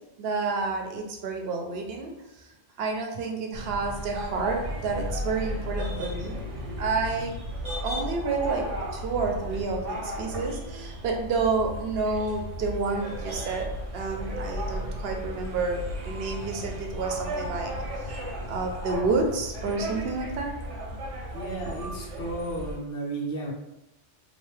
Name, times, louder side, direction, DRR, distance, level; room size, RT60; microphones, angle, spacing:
voice 1, 0.2-2.5 2.8-6.4 6.8-7.3 7.8-8.7 8.9-13.7 13.9-17.7 18.0-18.2 18.5-20.5, right 4 dB, 65° right, 2 dB, 0.7 m, -29 dB
sound 1, 3.5-22.8, equal, 85° right, 1.0 m, -35 dB
voice 2, 21.3-23.5, right 2 dB, 60° left, -2 dB, 0.8 m, -33 dB
2.9 x 2.0 x 3.1 m, 0.91 s
omnidirectional pair, 1.2 m